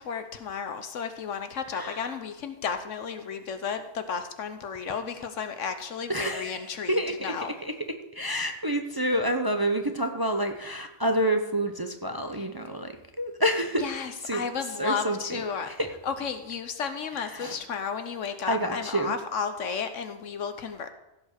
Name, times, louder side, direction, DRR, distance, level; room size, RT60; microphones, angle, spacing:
voice 1, 0.0-7.5 12.3-12.5 13.8-15.7 16.0-20.9, left 6 dB, 75° left, 9 dB, 1.3 m, -33 dB
voice 2, 1.7-2.1 6.1-7.3 7.6-7.7 8.1-13.9 14.2-14.4 14.8-15.9 17.3-17.6 18.5-19.1, right 1 dB, 20° right, 5 dB, 0.6 m, -28 dB
15.5 x 5.3 x 6.6 m, 0.93 s
omnidirectional pair, 1.3 m